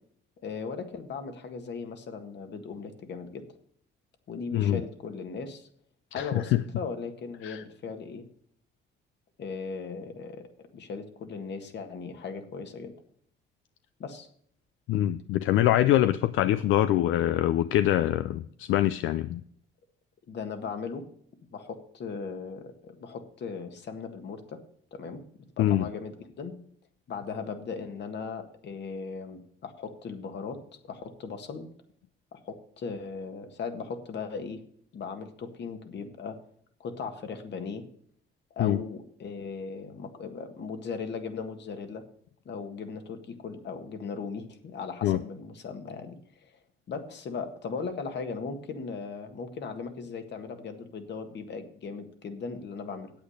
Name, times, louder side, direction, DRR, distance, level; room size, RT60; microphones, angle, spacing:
voice 1, 0.4-3.5 4.3-5.7 6.1-8.2 9.4-10.5 10.7-12.9 14.0-14.3 20.3-21.0 21.5-24.6 24.9-25.2 25.6-26.5 27.1-30.6 30.9-31.7 32.3-34.6 34.9-36.4 36.8-37.9 38.5-42.0 42.4-46.6 46.9-53.1, left 5 dB, 60° left, 6 dB, 1.7 m, -38 dB
voice 2, 14.9-19.4 25.6-25.9 38.6-38.8 45.0-45.2, left 13 dB, 85° left, 13 dB, 0.4 m, -24 dB
8.7 x 8.4 x 6.5 m, 0.63 s
cardioid pair, 90°, 20 cm